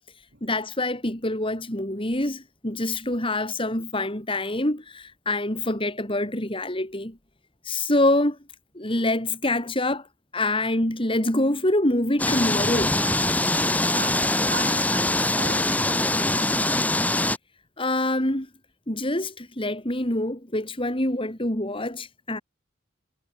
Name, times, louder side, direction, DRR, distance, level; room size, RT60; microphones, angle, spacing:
voice 1, 0.4-7.2 7.6-8.4 8.7-10.1 10.3-13.0 17.8-18.5 18.9-22.4, left 1 dB, 25° left, 4.2 m, -25 dB
sound 1, 12.2-17.4, left 1 dB, 10° left, 1.7 m, -23 dB
voice 2, 13.8-16.7, right 4 dB, 55° right, 6.8 m, -39 dB
head